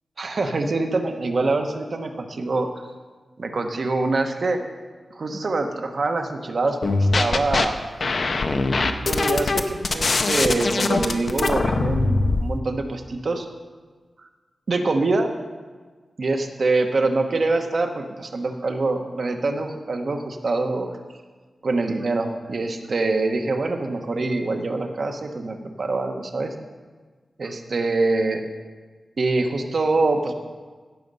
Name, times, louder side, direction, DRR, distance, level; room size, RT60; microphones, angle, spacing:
voice 1, 0.2-2.7 3.4-4.6 5.1-7.8 9.0-13.5 14.7-15.3 16.2-20.9 21.6-26.5 27.4-28.4 29.2-30.3, right 3 dB, 55° right, 5 dB, 1.1 m, -24 dB
sound 1, 6.8-7.6 8.0-12.4, left 3 dB, 50° left, 0.7 m, -22 dB
16.5 x 6.6 x 5.4 m, 1.4 s
wide cardioid pair, 150°, 0 cm